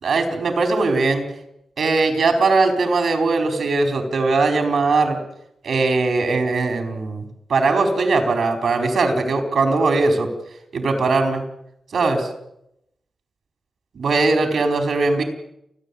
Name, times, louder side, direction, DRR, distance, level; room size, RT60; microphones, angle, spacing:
voice 1, 0.0-1.3 1.8-5.2 5.6-10.3 10.7-11.4 11.9-12.3 13.9-15.2, right 3 dB, 75° right, 5 dB, 4.5 m, -20 dB
30.0 x 10.5 x 8.6 m, 0.81 s
cardioid pair, 50°, 0 cm